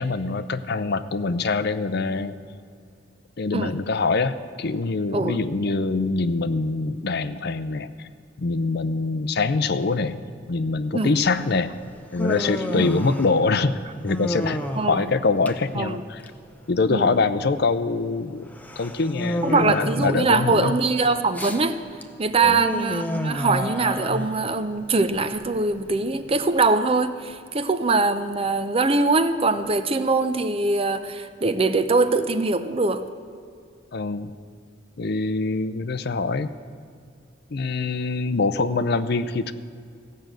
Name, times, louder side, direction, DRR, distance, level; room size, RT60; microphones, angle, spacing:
voice 1, 0.0-2.4 3.4-8.1 8.4-10.2 10.5-11.7 12.1-13.7 14.0-14.6 14.9-16.2 16.7-18.5 18.8-20.8 22.4-22.6 33.9-34.3 35.0-36.5 37.5-39.5, left 3 dB, 55° left, 13 dB, 0.5 m, -24 dB
Human voice, 11.2-26.5, left 1 dB, 10° left, 0.7 m, -31 dB
voice 2, 14.7-15.1 15.7-16.0 16.9-17.2 19.4-21.8 22.2-33.0, right 3 dB, 30° right, 11 dB, 0.6 m, -22 dB
16.0 x 6.5 x 9.0 m, 2.3 s
head